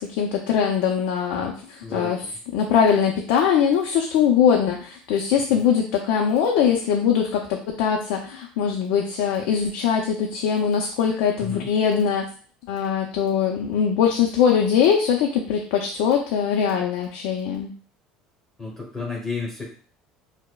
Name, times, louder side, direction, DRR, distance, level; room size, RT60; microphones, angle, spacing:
voice 1, 0.0-2.2 2.5-12.3 12.7-17.7, left 7 dB, 80° left, 1 dB, 0.5 m, -22 dB
voice 2, 1.8-2.4 5.5-5.6 11.4-11.7 18.6-19.6, left 4 dB, 15° left, -3 dB, 1.0 m, -32 dB
4.7 x 2.1 x 2.3 m, 0.42 s
cardioid pair, 130°, 3 cm